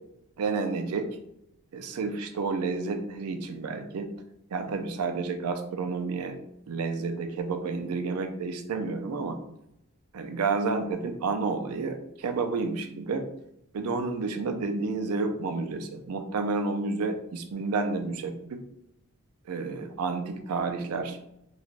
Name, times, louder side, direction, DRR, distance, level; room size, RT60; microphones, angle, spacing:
voice 1, 0.4-1.1 1.7-4.1 4.5-6.4 6.7-9.4 10.1-13.3 13.7-18.6 19.5-21.3, right 4 dB, 75° right, 6 dB, 0.4 m, -30 dB
3.2 x 2.3 x 2.4 m, 0.81 s
head